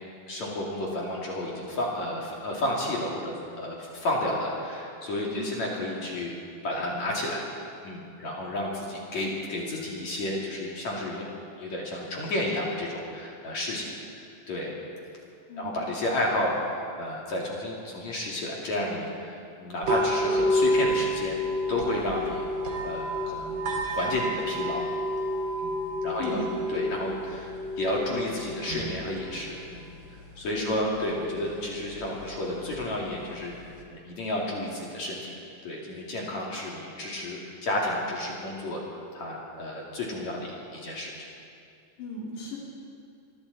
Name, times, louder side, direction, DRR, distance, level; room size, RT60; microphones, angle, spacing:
voice 1, 0.3-6.3 6.6-7.4 7.8-11.2 11.6-13.9 14.5-14.7 15.6-21.4 21.7-22.4 22.8-24.9 25.6-25.7 26.0-26.4 26.7-29.8 30.4-35.3 35.6-38.8 39.1-41.1, left 1 dB, 45° left, -3 dB, 3.4 m, -31 dB
sound 1, 19.8-33.8, equal, 30° right, 2.6 m, -31 dB
voice 2, 26.2-26.5 30.5-30.8 42.0-42.6, left 1 dB, 70° left, -4 dB, 4.9 m, -37 dB
27.0 x 23.0 x 4.2 m, 2.4 s
omnidirectional pair, 5.3 m